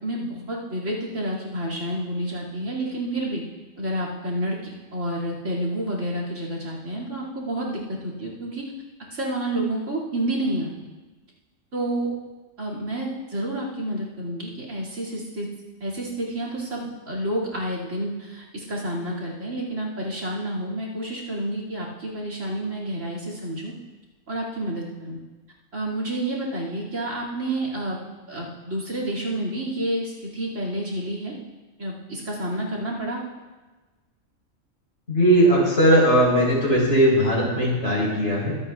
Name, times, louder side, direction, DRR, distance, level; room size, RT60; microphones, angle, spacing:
voice 1, 0.0-3.4 3.8-8.6 9.1-10.7 11.7-12.1 12.6-15.5 15.8-23.7 24.3-25.2 25.7-28.0 28.3-31.3 31.8-33.2, right 1 dB, 70° right, -3 dB, 2.8 m, -29 dB
voice 2, 35.1-38.5, right 1 dB, 60° left, -5 dB, 4.4 m, -18 dB
23.5 x 8.6 x 2.4 m, 1.2 s
omnidirectional pair, 1.4 m